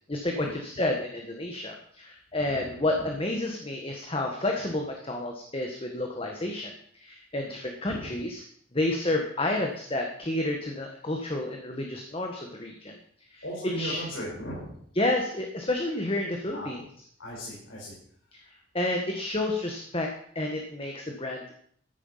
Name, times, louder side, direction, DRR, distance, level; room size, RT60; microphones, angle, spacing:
voice 1, 0.1-8.4 8.7-13.0 13.3-13.4 13.8-14.0 14.9-16.8 18.3-20.1 20.3-21.6, left 1 dB, 30° left, 2 dB, 1.5 m, -30 dB
voice 2, 2.5-3.1 7.8-8.1 13.4-14.7 16.5-16.7 17.2-17.9, equal, 75° left, -6 dB, 5.4 m, -37 dB
14.0 x 9.8 x 5.7 m, 0.62 s
head